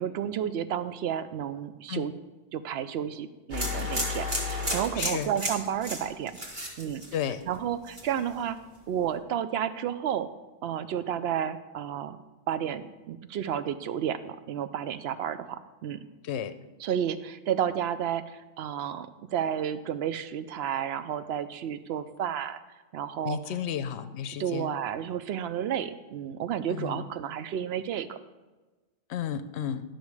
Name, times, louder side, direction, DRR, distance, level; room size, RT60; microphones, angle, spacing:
voice 1, 0.0-2.1 2.5-6.4 6.8-7.0 7.4-8.6 8.9-10.3 10.6-12.2 12.5-16.0 16.8-22.6 22.9-23.6 24.4-28.2, right 9 dB, 65° right, 12 dB, 0.8 m, -31 dB
sound 1, 3.5-7.6 7.9-8.3, left 1 dB, 45° right, 1.8 m, -32 dB
voice 2, 5.0-5.3 7.1-7.4 16.2-16.5 23.3-24.8 26.7-27.0 29.1-29.8, left 9 dB, 75° left, 12 dB, 0.9 m, -32 dB
11.5 x 6.3 x 4.8 m, 1.2 s
omnidirectional pair, 1.2 m